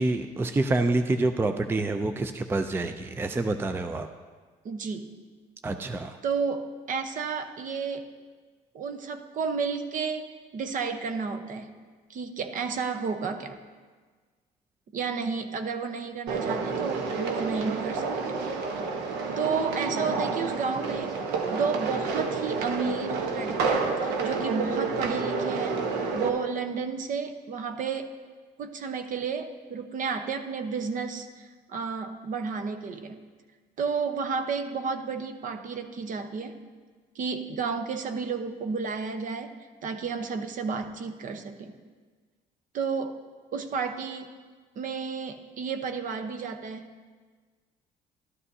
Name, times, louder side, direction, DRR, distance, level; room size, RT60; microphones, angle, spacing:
voice 1, 0.0-4.1 5.6-6.2, right 2 dB, 15° right, 7 dB, 0.4 m, -27 dB
voice 2, 4.6-5.2 6.2-8.1 8.7-10.3 10.5-11.7 12.1-13.6 14.9-18.4 19.4-21.1 21.5-28.2 28.6-33.2 33.8-36.6 37.1-39.6 39.8-41.7 42.7-43.2 43.5-44.3 44.8-46.9, right 5 dB, 50° right, 7 dB, 0.9 m, -32 dB
sound 1, 16.3-26.3, right 4 dB, 90° right, 1.1 m, -29 dB
12.5 x 12.5 x 2.7 m, 1.5 s
cardioid pair, 110°, 17 cm